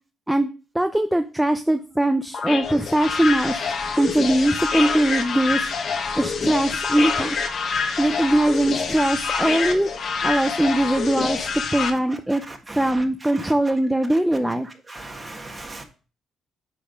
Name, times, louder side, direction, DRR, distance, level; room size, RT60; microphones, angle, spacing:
voice 1, 0.7-5.7 6.1-7.4 8.0-9.9 10.2-12.4 12.8-14.7, right 1 dB, 5° right, 8 dB, 0.5 m, -21 dB
sound 1, 2.3-11.9, left 5 dB, 55° left, 1.1 m, -26 dB
voice 2, 14.9-15.8, right 2 dB, 20° right, 4 dB, 1.6 m, -37 dB
9.7 x 3.5 x 5.0 m, 0.36 s
cardioid pair, 90°, 0 cm